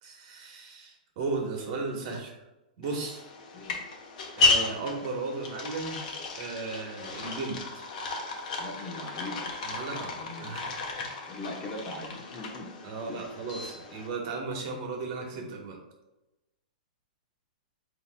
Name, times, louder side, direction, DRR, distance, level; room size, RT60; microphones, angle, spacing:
voice 1, 0.0-2.3 2.8-3.3 4.3-6.1 6.4-7.8 9.6-11.0 12.8-15.8, right 3 dB, 45° right, 1 dB, 1.2 m, -35 dB
sound 1, 2.8-14.1, left 3 dB, 55° left, 1.0 m, -33 dB
voice 2, 8.6-9.5 9.9-10.6 11.3-12.7 13.1-13.3, left 2 dB, 20° left, 1 dB, 0.9 m, -40 dB
8.0 x 2.9 x 2.2 m, 0.99 s
hypercardioid pair, 145°, 5 cm